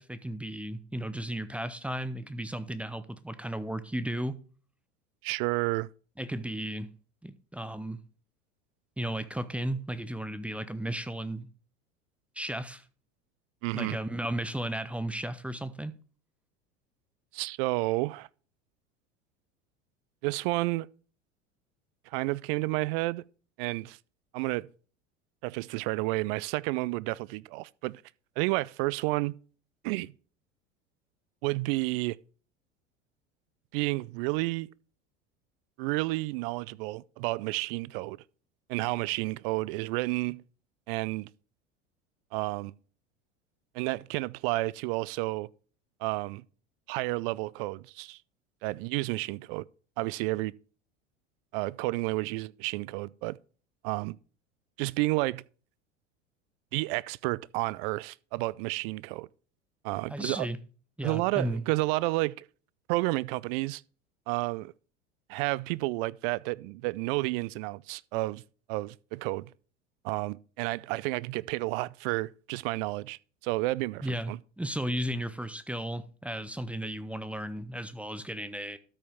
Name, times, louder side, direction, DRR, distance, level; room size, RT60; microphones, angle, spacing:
voice 1, 0.0-4.4 6.2-6.9 7.2-8.0 9.0-11.5 12.4-12.8 13.7-15.9 60.1-60.6 61.0-61.6 74.0-78.8, right 1 dB, 5° right, 0.6 m, -34 dB
voice 2, 5.2-5.9 13.6-14.0 17.3-18.3 20.2-20.9 22.1-23.2 23.6-24.0 24.3-24.7 25.4-28.0 28.4-29.4 29.8-30.1 31.4-32.2 33.7-34.7 35.8-38.2 38.7-40.4 40.9-41.3 42.3-42.7 43.7-45.5 46.0-46.4 46.9-48.2 48.6-49.6 50.0-50.5 51.5-53.4 53.8-54.2 54.8-55.4 56.7-59.3 59.8-60.5 61.0-62.5 62.9-63.8 64.3-64.7 65.3-68.4 68.7-69.5 70.0-74.4, right 22 dB, 50° right, 0.4 m, -31 dB
13.0 x 5.5 x 3.5 m
hypercardioid pair, 85°, 38 cm